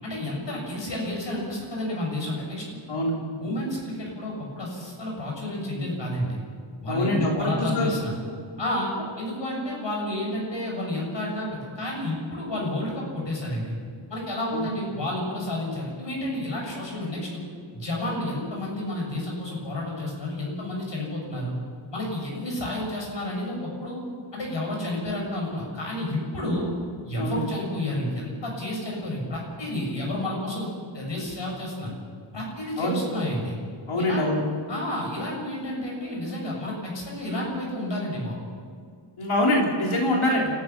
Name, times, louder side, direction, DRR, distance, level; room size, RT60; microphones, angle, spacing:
voice 1, 0.0-2.8 3.4-6.4 6.8-8.2 8.6-13.7 14.1-17.4 17.7-21.5 21.9-24.0 24.3-26.7 27.0-31.9 32.3-33.6 34.0-34.3 34.7-38.4, left 1 dB, 65° left, -1 dB, 7.1 m, -30 dB
voice 2, 6.9-7.9 14.5-14.6 27.2-27.5 32.8-33.0 33.9-34.4 39.2-40.5, left 1 dB, 90° left, -2 dB, 3.5 m, -24 dB
30.0 x 14.5 x 6.0 m, 2.1 s
wide cardioid pair, 140°, 47 cm